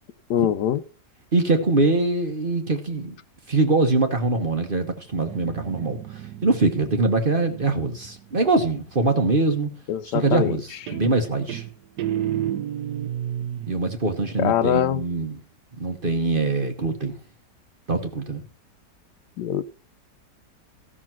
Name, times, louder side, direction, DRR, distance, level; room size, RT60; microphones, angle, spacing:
voice 1, 0.3-0.8 9.9-10.6 14.4-15.0 19.4-19.6, left 10 dB, 80° left, 1.3 m, -23 dB
voice 2, 1.3-3.1 3.5-6.0 6.4-9.7 10.0-11.6 13.7-15.4 15.8-17.1 17.9-18.4, right 3 dB, 35° right, 1.2 m, -23 dB
Guitar, 5.1-8.7 10.2-10.6 10.9-13.8, right 11 dB, 75° right, 1.3 m, -32 dB
14.0 x 6.1 x 5.9 m
omnidirectional pair, 1.8 m